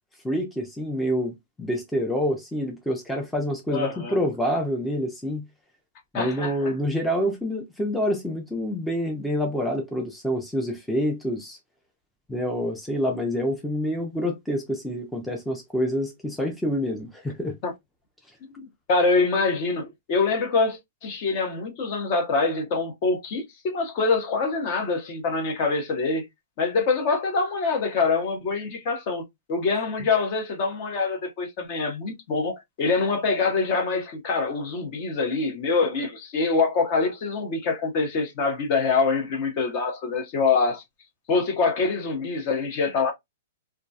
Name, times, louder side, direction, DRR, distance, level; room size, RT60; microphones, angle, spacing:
voice 1, 0.2-5.5 6.1-11.6 12.3-17.6, equal, 5° left, 0.4 m, -27 dB
voice 2, 3.7-4.2 6.1-6.7 17.6-17.7 18.6-26.2 26.6-29.2 29.5-40.8 41.3-43.1, left 4 dB, 45° left, 0.8 m, -25 dB
2.3 x 2.1 x 2.6 m
hypercardioid pair, 145°, 0 cm